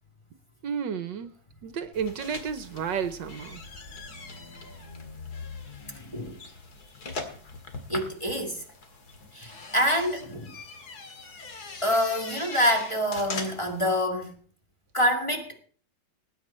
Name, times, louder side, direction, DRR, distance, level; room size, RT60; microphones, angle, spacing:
voice 1, 0.6-1.3 1.6-3.6, right 7 dB, 70° right, 1.4 m, -31 dB
sound 1, 1.9-13.8, left 3 dB, 50° left, 2.3 m, -41 dB
voice 2, 6.0-6.4 7.9-8.6 9.3-10.5 11.8-14.3 14.9-15.6, equal, 15° left, 2.0 m, -26 dB
19.0 x 9.6 x 4.3 m
omnidirectional pair, 2.2 m